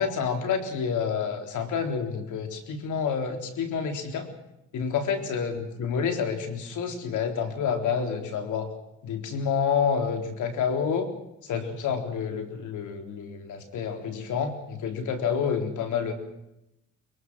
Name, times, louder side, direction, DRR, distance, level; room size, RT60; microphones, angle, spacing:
voice 1, 0.0-4.3 4.7-8.7 9.0-11.1 11.5-16.1, left 6 dB, 75° left, 5 dB, 4.1 m, -28 dB
23.5 x 22.5 x 6.3 m, 0.86 s
cardioid pair, 90°, 30 cm